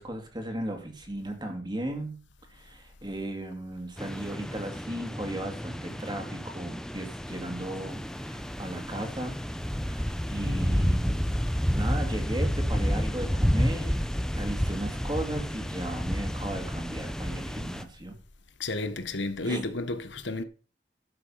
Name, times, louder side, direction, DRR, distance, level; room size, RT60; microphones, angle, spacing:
voice 1, 0.0-2.2 2.5-9.4 9.9-14.1 14.4-18.2 19.4-19.7, right 1 dB, 25° right, 2.3 m, -36 dB
sound 1, 4.0-17.8, equal, 5° left, 0.7 m, -30 dB
voice 2, 18.6-20.4, left 2 dB, 90° left, 1.2 m, -32 dB
12.5 x 6.2 x 5.6 m
head